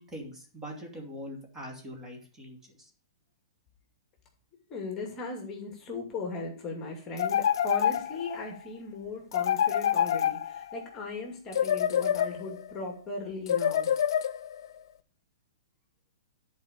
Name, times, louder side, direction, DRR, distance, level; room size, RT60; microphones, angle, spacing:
voice 1, 0.0-2.9, equal, 15° right, 0 dB, 2.7 m, -43 dB
voice 2, 4.7-13.9, left 3 dB, 20° left, 2 dB, 2.5 m, -38 dB
sound 1, 7.2-8.5 9.3-10.8 11.5-12.7 13.5-14.7, left 9 dB, 65° left, 0.7 m, -27 dB
10.5 x 4.9 x 6.7 m, 0.41 s
hypercardioid pair, 140°, 2 cm